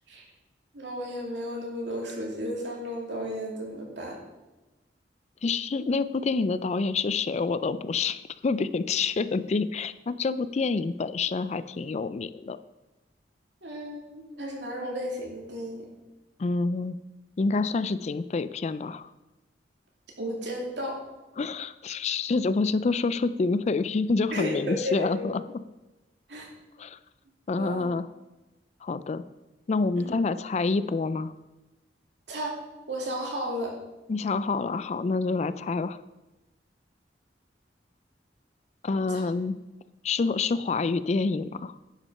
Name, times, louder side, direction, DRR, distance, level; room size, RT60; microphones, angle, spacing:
voice 1, 0.7-4.2 13.6-15.9 20.2-21.0 24.3-25.3 26.3-26.5 27.6-27.8 30.0-30.1 32.3-32.6 32.9-33.8 39.1-39.2, equal, 75° right, -1 dB, 2.7 m, -33 dB
voice 2, 5.4-12.6 16.4-17.0 17.4-19.1 21.4-25.4 26.8-27.0 27.5-28.1 28.8-29.2 29.7-31.3 34.1-36.0 38.8-39.6 40.0-41.7, left 4 dB, 40° left, 14 dB, 0.4 m, -27 dB
10.5 x 6.0 x 5.6 m, 1.1 s
head